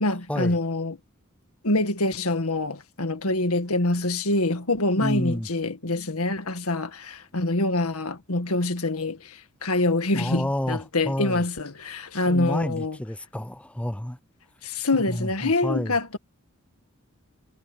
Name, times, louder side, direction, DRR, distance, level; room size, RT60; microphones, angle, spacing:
voice 1, 0.0-1.0 1.6-6.9 7.3-9.2 9.6-13.0 14.8-16.2, left 2 dB, 85° left, 1.9 m, -25 dB
voice 2, 5.0-5.5 10.1-11.4 12.3-14.2 15.2-15.3 15.6-15.9, left 1 dB, 5° left, 0.6 m, -29 dB
head